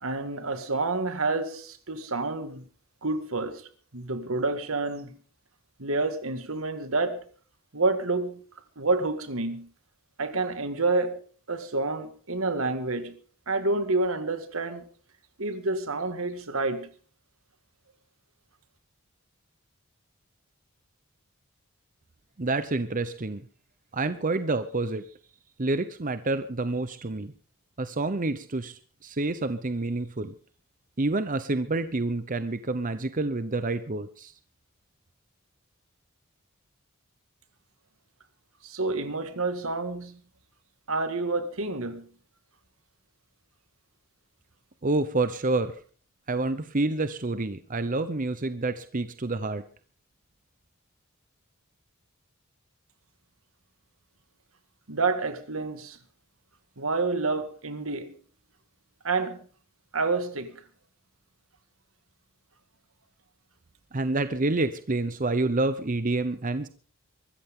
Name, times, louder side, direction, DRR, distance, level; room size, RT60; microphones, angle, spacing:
voice 1, 0.0-2.7 3.0-3.7 3.9-5.2 5.8-7.2 7.7-8.4 8.8-9.7 10.2-11.2 11.5-13.2 13.5-14.9 15.4-16.9 38.6-40.2 40.9-42.0 54.9-56.0 56.8-58.1 59.0-59.4 59.9-60.6, right 3 dB, 75° right, 2.0 m, -28 dB
voice 2, 22.4-23.4 23.9-25.1 25.6-27.3 27.8-30.3 31.0-34.3 44.8-45.8 46.3-49.6 63.9-66.7, right 2 dB, 40° right, 0.8 m, -28 dB
23.5 x 14.0 x 3.8 m
head